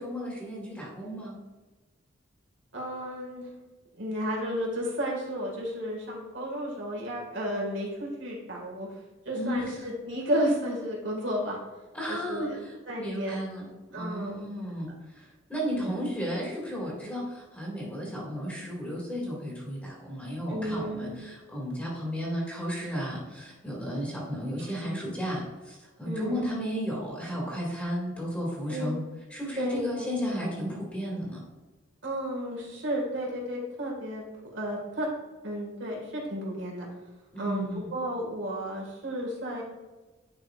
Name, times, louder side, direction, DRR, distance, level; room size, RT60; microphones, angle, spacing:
voice 1, 0.0-1.4 9.3-9.6 11.9-29.0 29.3-31.4 37.3-37.9, equal, 10° left, -4 dB, 2.1 m, -34 dB
voice 2, 2.7-3.5 3.9-8.9 9.3-11.6 12.1-12.6 12.9-13.4 13.9-14.4 15.8-15.9 20.5-21.2 24.6-24.7 26.1-26.5 28.7-28.9 29.6-30.1 32.0-35.1 35.4-36.9 37.4-39.6, equal, 65° right, -2 dB, 1.9 m, -32 dB
9.7 x 5.3 x 2.5 m, 1.2 s
head